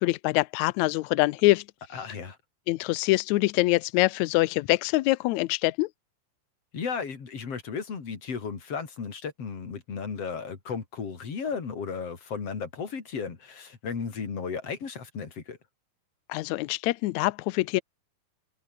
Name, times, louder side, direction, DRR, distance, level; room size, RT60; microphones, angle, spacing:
voice 1, 0.0-1.6 2.7-5.9 16.3-17.8, left 19 dB, 85° left, 1.6 m, -24 dB
voice 2, 1.9-2.4 6.7-15.6, left 5 dB, 45° left, 4.3 m, -34 dB
omnidirectional pair, 4.0 m